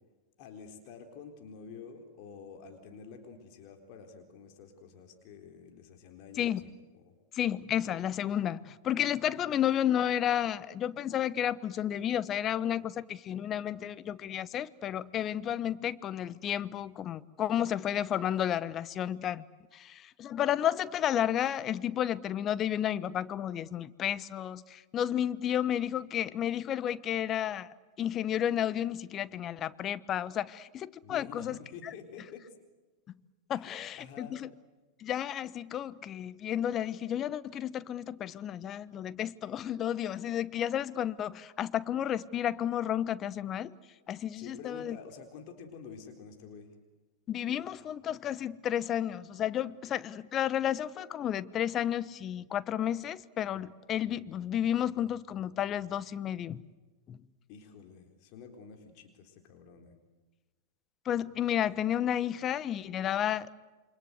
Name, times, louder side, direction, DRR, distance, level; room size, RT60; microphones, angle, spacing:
voice 1, 0.4-7.2 9.3-9.6 31.0-32.5 33.5-34.4 44.4-46.7 57.5-59.9, left 6 dB, 45° left, 4.0 m, -49 dB
voice 2, 7.3-19.4 19.7-31.9 33.5-34.5 35.0-43.7 44.1-45.0 47.3-56.6 57.1-57.2 61.1-63.5, left 10 dB, 30° left, 1.0 m, -32 dB
28.5 x 25.0 x 8.0 m
figure-of-eight pair, 95°, 0 cm